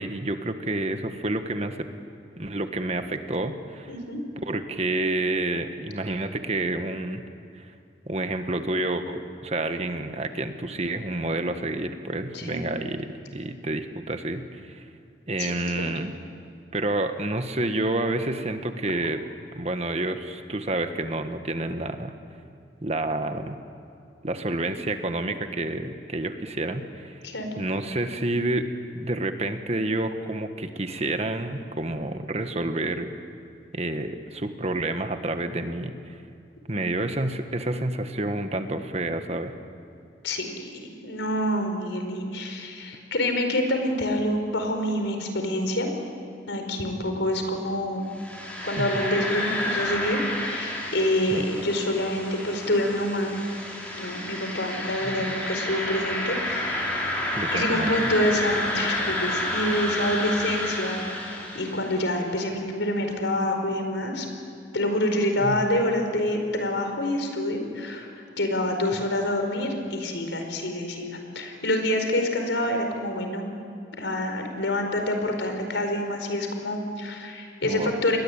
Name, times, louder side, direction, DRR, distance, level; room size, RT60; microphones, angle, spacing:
voice 1, 0.0-1.9 2.4-3.9 4.4-7.2 7.5-7.7 8.1-14.8 15.3-16.1 16.7-19.2 19.5-22.1 22.8-23.6 24.2-27.3 27.6-28.7 28.9-33.1 33.7-36.2 36.7-39.5 48.8-49.1 51.3-51.4 55.2-55.4 57.3-57.9 65.4-65.6 77.6-77.9, right 2 dB, 35° right, 8 dB, 1.5 m, -29 dB
voice 2, 3.9-4.2 12.3-12.6 15.4-15.9 27.2-27.5 36.7-36.9 40.2-45.9 46.5-48.1 48.6-53.3 53.9-57.1 57.5-61.0 61.5-64.3 64.7-68.1 68.4-71.1 71.3-73.5 74.0-78.2, left 1 dB, 85° left, 4 dB, 4.8 m, -27 dB
sound 1, 48.1-62.1, left 1 dB, 10° left, 5.4 m, -30 dB
30.0 x 21.5 x 9.0 m, 2.5 s
head